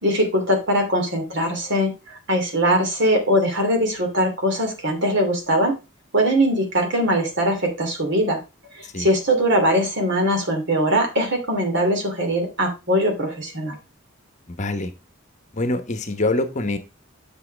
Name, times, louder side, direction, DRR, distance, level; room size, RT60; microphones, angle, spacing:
voice 1, 0.0-5.8 6.1-8.4 9.0-13.8, equal, 55° right, 3 dB, 2.7 m, -21 dB
voice 2, 14.5-14.9 15.5-16.8, left 2 dB, 35° left, 9 dB, 1.0 m, -25 dB
7.6 x 7.0 x 3.3 m, 0.27 s
head